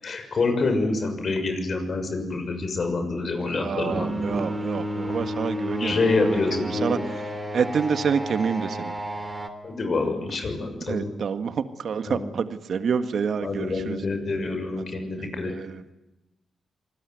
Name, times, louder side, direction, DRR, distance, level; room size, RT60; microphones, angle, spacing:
voice 1, 0.0-4.5 5.8-7.1 9.6-11.1 12.1-12.3 13.4-15.5, left 3 dB, 50° left, 6 dB, 6.6 m, -27 dB
voice 2, 3.5-6.0 6.3-7.0 7.5-8.9 10.9-14.0 15.4-15.9, right 6 dB, 65° right, 10 dB, 1.8 m, -28 dB
sound 1, 3.9-9.5, equal, 15° right, 3.4 m, -31 dB
26.5 x 20.0 x 9.5 m, 0.97 s
cardioid pair, 95°, 0 cm